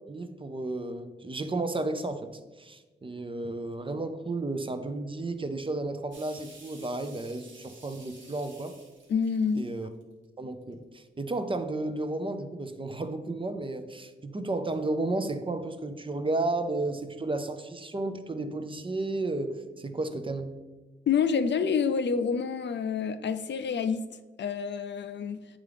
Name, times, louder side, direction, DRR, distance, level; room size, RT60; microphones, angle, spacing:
voice 1, 0.1-2.3 2.6-8.8 9.5-9.9 10.4-20.5, right 2 dB, 25° right, 0.5 m, -33 dB
sound 1, 6.1-10.2 10.7-11.0, right 3 dB, 80° right, 1.1 m, -53 dB
voice 2, 9.1-9.7 21.1-24.1 24.4-25.4, left 6 dB, 65° left, 0.4 m, -27 dB
8.1 x 3.7 x 3.4 m
wide cardioid pair, 80°, 19 cm